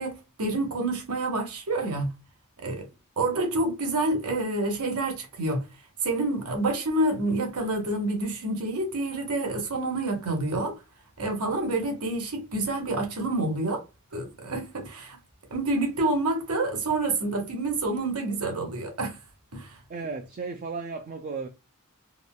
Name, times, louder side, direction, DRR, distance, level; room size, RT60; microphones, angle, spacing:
voice 1, 0.0-2.1 2.6-2.9 3.2-5.6 6.0-10.8 11.2-13.8 14.1-15.2 15.5-19.2 19.5-19.8, right 2 dB, 80° right, 1.0 m, -28 dB
voice 2, 19.9-21.5, right 4 dB, 35° right, 0.3 m, -35 dB
3.6 x 2.2 x 2.3 m
head